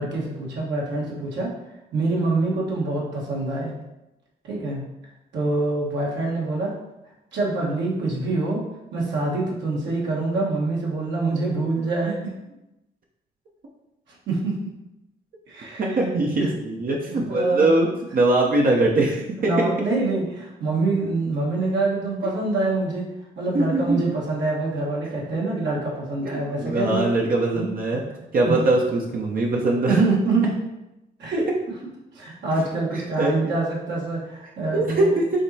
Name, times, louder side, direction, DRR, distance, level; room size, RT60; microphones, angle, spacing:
voice 1, 0.0-1.5 1.9-3.7 4.4-4.8 5.3-6.7 7.3-8.6 8.9-12.3 14.3-14.5 15.5-15.9 16.4-16.5 17.1-17.6 19.4-23.0 23.4-27.1 27.5-27.7 28.4-28.6 29.9-30.5 31.2-31.4 32.1-35.1, right 3 dB, 70° right, -4 dB, 1.4 m, -25 dB
voice 2, 15.8-17.9 18.1-19.7 23.5-24.0 26.2-28.0 28.3-30.0 31.3-31.4 33.2-33.3 34.7-35.4, right 2 dB, 50° right, -1 dB, 0.7 m, -22 dB
5.0 x 3.0 x 2.8 m, 0.93 s
hypercardioid pair, 50°, 19 cm